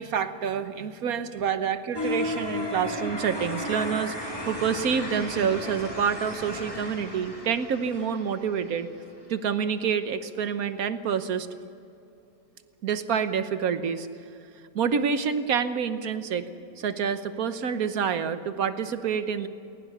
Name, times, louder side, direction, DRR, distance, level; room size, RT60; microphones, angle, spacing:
voice 1, 0.0-8.9 9.3-11.5 12.8-14.1 14.7-16.5 16.8-19.5, right 7 dB, 65° right, 10 dB, 1.5 m, -27 dB
sound 1, 1.9-8.9, left 1 dB, 15° left, 3.8 m, -34 dB
20.5 x 19.0 x 6.7 m, 2.7 s
omnidirectional pair, 1.7 m